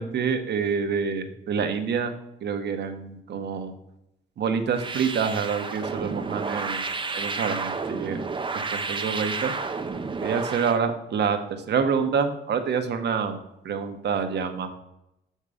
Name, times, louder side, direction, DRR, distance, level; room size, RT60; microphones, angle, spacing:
voice 1, 0.0-2.1 2.4-3.7 4.4-6.8 7.1-8.2 8.7-9.5 10.2-11.4 11.7-13.4 13.6-14.7, right 6 dB, 60° right, 7 dB, 1.0 m, -27 dB
sound 1, 4.7-10.8, right 4 dB, 25° right, 0.7 m, -31 dB
6.6 x 5.5 x 4.9 m, 0.83 s
cardioid pair, 90°, 20 cm